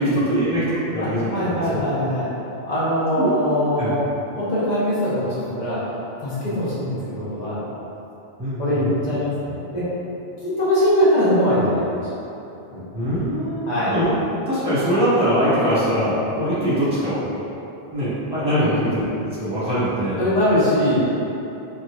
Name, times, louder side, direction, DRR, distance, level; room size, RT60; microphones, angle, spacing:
voice 1, 0.0-1.4 1.7-1.8 3.2-3.3 3.8-3.9 6.4-6.6 8.4-8.9 12.9-14.1 14.5-17.2 17.9-19.0 19.3-20.2 20.9-21.0, equal, 5° right, -13 dB, 1.4 m, -22 dB
voice 2, 1.0-2.3 2.6-4.0 4.4-5.9 6.2-7.6 8.6-9.9 10.4-11.8 12.7-12.9 13.7-13.9 18.6-18.9 20.2-21.1, equal, 40° left, -10 dB, 1.2 m, -22 dB
4.4 x 2.8 x 2.5 m, 2.9 s
omnidirectional pair, 1.0 m